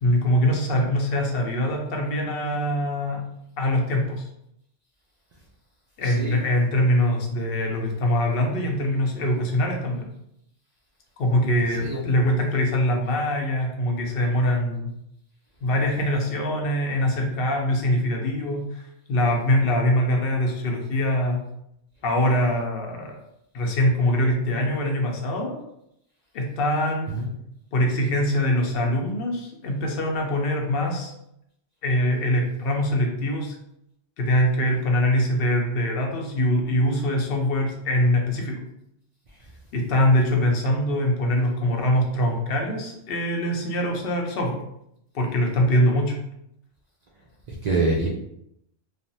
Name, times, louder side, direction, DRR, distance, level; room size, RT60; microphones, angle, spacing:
voice 1, 0.0-3.2 3.6-4.3 6.0-10.1 11.2-14.9 15.6-18.8 19.1-21.4 22.0-23.2 23.5-25.6 26.3-27.2 27.7-31.1 31.8-33.5 34.2-38.6 39.7-44.6 45.1-46.2, left 1 dB, 60° left, 1 dB, 0.8 m, -23 dB
voice 2, 6.0-6.4 11.8-12.0 27.1-27.3 47.5-48.1, right 3 dB, 60° right, -2 dB, 0.4 m, -25 dB
3.1 x 2.0 x 2.6 m, 0.78 s
omnidirectional pair, 1.2 m